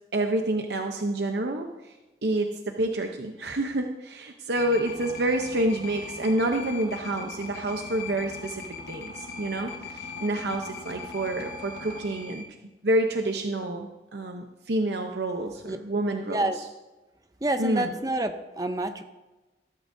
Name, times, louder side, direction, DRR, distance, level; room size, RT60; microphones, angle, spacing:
voice 1, 0.1-1.7 2.2-12.5 12.8-16.5 17.6-17.9, right 1 dB, 75° right, 4 dB, 0.8 m, -28 dB
sound 1, 4.5-12.4, left 4 dB, 60° left, 1.4 m, -40 dB
voice 2, 17.4-19.0, right 1 dB, 20° right, 8 dB, 0.6 m, -28 dB
15.5 x 13.5 x 2.7 m, 1.1 s
head